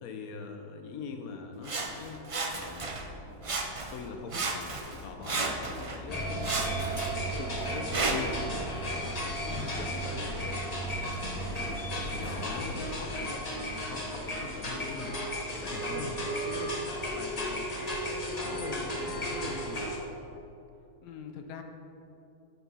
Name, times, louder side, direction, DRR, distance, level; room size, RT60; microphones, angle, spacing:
voice 1, 0.0-3.6 3.9-11.2 11.5-15.2 15.5-16.8 17.1-17.6 18.0-20.0, left 4 dB, 65° left, 4 dB, 1.3 m, -42 dB
Sawing, 1.6-3.1 3.4-4.0 4.3-6.0 6.4-8.4 9.1-9.2, right 3 dB, 50° right, 0.4 m, -34 dB
sound 1, 6.1-20.0, equal, 25° left, 1.0 m, -34 dB
voice 2, 9.5-10.3 15.7-16.3 21.0-21.6, left 7 dB, 85° left, 5 dB, 1.3 m, -43 dB
9.1 x 7.2 x 5.6 m, 2.9 s
omnidirectional pair, 1.7 m